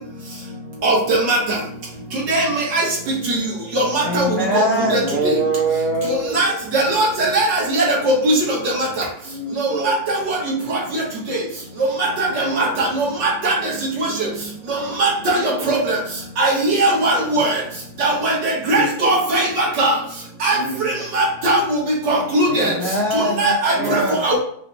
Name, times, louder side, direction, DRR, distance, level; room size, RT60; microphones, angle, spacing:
voice 1, 4.0-5.1 22.5-24.3, left 1 dB, 45° left, -5 dB, 0.9 m, -23 dB
voice 2, 4.8-6.4 9.2-9.9 12.3-12.8 13.9-14.3 14.7-14.9 15.4-15.5 16.8-17.2 18.6-19.1 20.5-21.0 22.5-22.9 23.7-24.2, right 3 dB, 35° right, -5 dB, 0.8 m, -26 dB
voice 3, 6.7-7.1 7.3-7.5 8.2-8.3 12.6-12.7 13.4-13.5 15.0-15.1 15.7-15.8 16.4-17.5 18.0-18.3 18.7-19.4 19.8-19.9 20.4-20.5 21.2-21.6 22.1-22.7 23.4-23.7 24.2-24.4, right 2 dB, 65° right, -4 dB, 1.9 m, -18 dB
5.6 x 2.3 x 3.2 m, 0.64 s
omnidirectional pair, 2.1 m